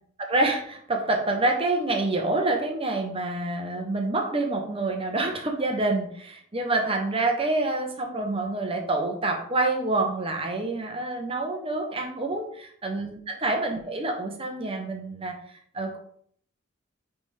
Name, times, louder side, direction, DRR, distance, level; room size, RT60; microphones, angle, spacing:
voice 1, 0.2-15.4 15.7-16.0, right 2 dB, 30° right, 3 dB, 0.8 m, -27 dB
9.5 x 3.5 x 3.4 m, 0.62 s
head